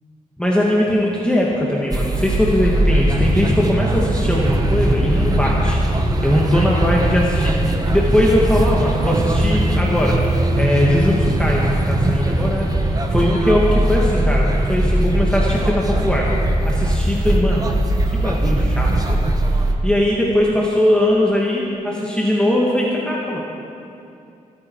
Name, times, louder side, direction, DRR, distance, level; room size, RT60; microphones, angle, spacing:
voice 1, 0.4-5.8 6.2-16.3 16.7-17.7 18.1-19.2 19.8-23.4, left 1 dB, 5° left, -4 dB, 2.1 m, -20 dB
sound 1, 1.9-19.7, right 1 dB, 25° right, 1.4 m, -19 dB
27.0 x 8.9 x 4.8 m, 2.6 s
cardioid pair, 80°, 14 cm